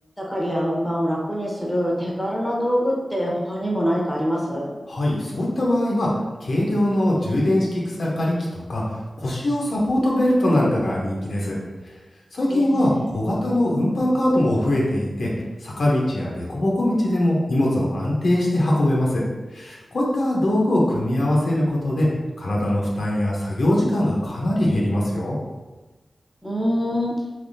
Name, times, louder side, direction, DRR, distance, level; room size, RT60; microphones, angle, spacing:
voice 1, 0.2-4.7 12.5-13.1 26.4-27.1, equal, 5° left, -3 dB, 0.8 m, -24 dB
voice 2, 4.9-6.1 6.4-11.6 12.3-15.3 15.6-19.2 19.5-22.1 22.4-25.4, left 1 dB, 75° left, -4 dB, 0.8 m, -22 dB
3.4 x 2.8 x 2.6 m, 1.2 s
wide cardioid pair, 75°, 0 cm